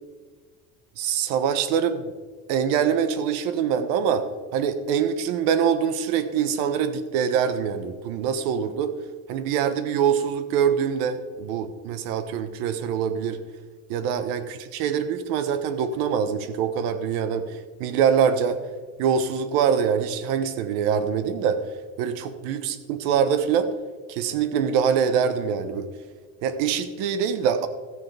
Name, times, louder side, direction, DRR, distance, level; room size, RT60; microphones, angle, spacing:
voice 1, 1.0-2.0 2.5-8.9 9.3-13.4 13.9-18.6 19.0-21.6 22.0-23.7 24.1-25.9 26.4-27.7, right 7 dB, 80° right, 11 dB, 1.2 m, -24 dB
14.0 x 9.9 x 3.4 m, 1.5 s
cardioid pair, 175°, 36 cm